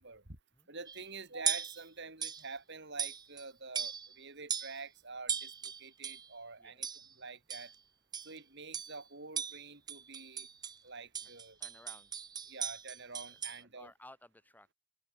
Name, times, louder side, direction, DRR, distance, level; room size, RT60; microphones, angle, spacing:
voice 1, 0.0-0.4 0.7-5.5 5.8-6.9 7.2-7.7 8.2-10.5 10.8-11.6 12.5-13.9, right 4 dB, 50° right, 3.2 m, -47 dB
sound 1, 0.9-1.1 1.5-1.8 2.2-2.5 3.0-3.4 3.7-4.2 4.5-4.8 5.3-6.3 6.8-7.1 7.5-7.8 8.1-8.4 8.7-9.0 9.4-10.8 11.1-13.6, right 8 dB, 20° right, 0.4 m, -38 dB
voice 2, 11.6-12.1 13.3-14.7, left 1 dB, 10° left, 5.0 m, -58 dB
head